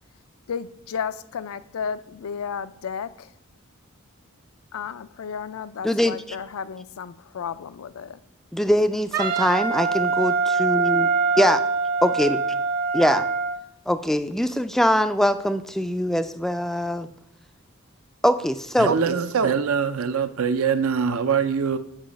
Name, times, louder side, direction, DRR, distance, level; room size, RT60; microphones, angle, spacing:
voice 1, 0.5-3.3 4.7-8.2, left 6 dB, 75° left, 0.4 m, -33 dB
voice 2, 5.8-6.4 8.5-11.1 11.4-11.6 12.0-12.4 12.9-13.3 13.9-17.1 18.2-19.0, equal, ahead, 0.3 m, -22 dB
Wind instrument woodwind instrument, 9.1-13.6, right 4 dB, 40° right, 0.9 m, -23 dB
voice 3, 18.8-21.8, right 6 dB, 75° right, 0.6 m, -23 dB
8.9 x 4.8 x 5.1 m
head